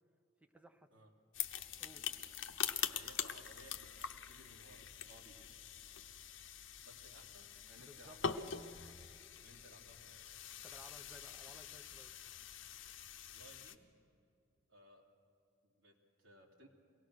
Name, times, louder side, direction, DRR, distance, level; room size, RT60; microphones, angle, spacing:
voice 1, 0.4-0.9 1.8-2.1 7.8-8.2 10.6-12.1, equal, 5° right, 7 dB, 0.8 m, -59 dB
sound 1, 1.3-13.7, left 8 dB, 70° left, 0.8 m, -44 dB
voice 2, 2.8-5.5 6.8-8.7 9.4-10.3 13.3-13.8 14.7-15.1 15.6-16.7, right 1 dB, 90° right, -1 dB, 3.0 m, -61 dB
23.0 x 18.0 x 6.4 m, 2.5 s
head